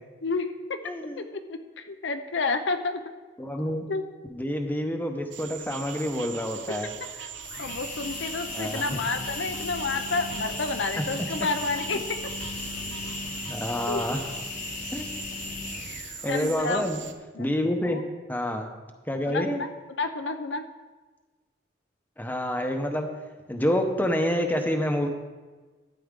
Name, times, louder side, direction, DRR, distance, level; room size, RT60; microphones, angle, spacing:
voice 1, 0.2-0.8 1.2-3.0 3.9-4.0 7.6-12.2 13.9-14.0 16.3-16.9 17.3-17.5 17.9-18.0 19.2-20.6, left 3 dB, 80° left, 7 dB, 0.7 m, -30 dB
voice 2, 0.8-1.2 3.4-3.8 4.3-6.9 8.5-9.0 13.5-14.2 14.9-15.1 16.2-17.0 17.4-18.0 18.3-18.7 19.1-19.6 22.2-23.1 23.5-25.1, equal, 10° left, 4 dB, 0.8 m, -28 dB
sound 1, 5.3-17.1, right 8 dB, 80° right, 0.8 m, -40 dB
sound 2, 7.4-16.8, left 4 dB, 45° left, 1.0 m, -37 dB
12.5 x 9.2 x 3.7 m, 1.3 s
head